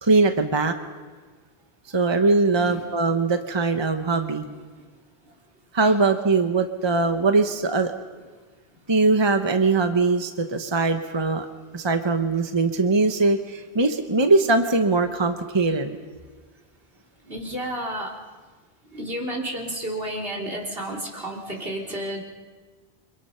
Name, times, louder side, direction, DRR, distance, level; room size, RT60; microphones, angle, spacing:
voice 1, 0.0-0.7 1.9-4.5 5.7-7.9 8.9-11.5 11.7-16.0, right 3 dB, 25° right, 7 dB, 1.1 m, -21 dB
voice 2, 4.5-4.9 5.8-5.9 17.2-18.1 18.9-22.2, right 1 dB, 70° right, -1 dB, 3.8 m, -32 dB
29.0 x 25.0 x 5.8 m, 1.4 s
omnidirectional pair, 1.0 m